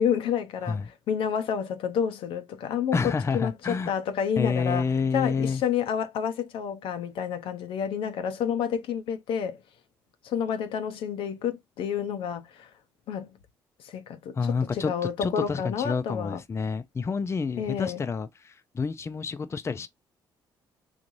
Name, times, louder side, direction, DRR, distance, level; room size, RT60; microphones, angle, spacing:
voice 1, 0.0-3.0 3.3-4.8 5.1-9.6 10.2-12.7 13.1-13.4 13.8-16.4 17.6-18.0, left 8 dB, 75° left, 0.7 m, -29 dB
voice 2, 2.9-3.9 4.4-5.6 14.4-14.9 15.2-19.9, left 5 dB, 30° left, 0.5 m, -28 dB
4.0 x 2.5 x 3.0 m
cardioid pair, 75°, 9 cm